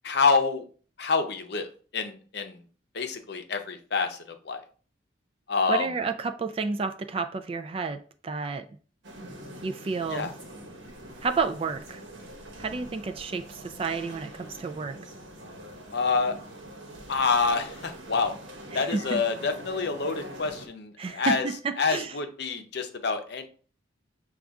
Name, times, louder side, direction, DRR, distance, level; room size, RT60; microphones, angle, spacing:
voice 1, 0.0-0.6 1.0-2.6 2.9-4.6 5.5-5.9 10.1-10.3 15.9-16.4 17.1-18.3 18.7-21.5 21.8-23.5, left 4 dB, 60° left, 0.6 m, -27 dB
voice 2, 5.7-8.6 9.6-10.3 11.2-12.0 12.6-15.0 18.7-19.2 21.0-22.1, right 4 dB, 30° right, 0.3 m, -31 dB
sound 1, 9.0-20.7, right 1 dB, 80° right, 1.0 m, -44 dB
6.3 x 2.4 x 3.5 m
head